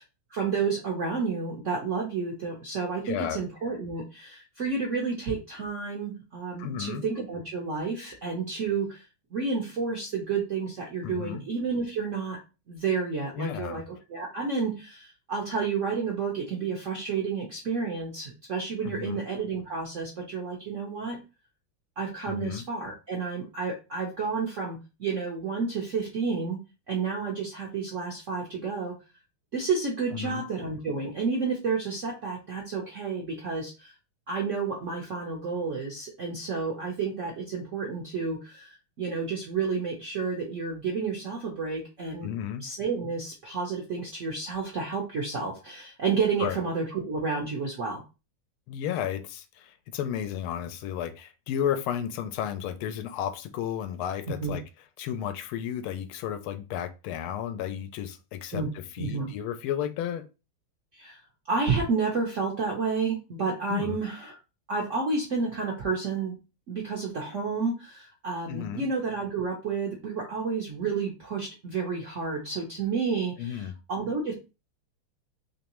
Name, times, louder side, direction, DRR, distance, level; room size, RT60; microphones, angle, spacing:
voice 1, 0.3-9.0 9.3-12.4 12.7-13.8 14.1-21.2 22.0-26.6 26.9-28.9 29.5-33.9 34.3-42.3 42.6-48.0 54.4-54.5 58.5-58.7 59.0-59.3 60.9-61.2 61.5-64.4 64.7-66.4 66.7-74.3, right 4 dB, 65° right, -1 dB, 0.7 m, -30 dB
voice 2, 3.0-3.4 6.6-7.0 11.0-11.4 13.3-13.8 18.8-19.2 22.3-22.6 30.1-30.4 42.2-42.6 46.4-46.6 48.7-54.6 55.0-60.3 63.7-64.0 68.5-68.9 73.4-73.7, left 9 dB, 90° left, 10 dB, 1.4 m, -33 dB
3.7 x 3.0 x 2.9 m, 0.29 s
omnidirectional pair, 2.3 m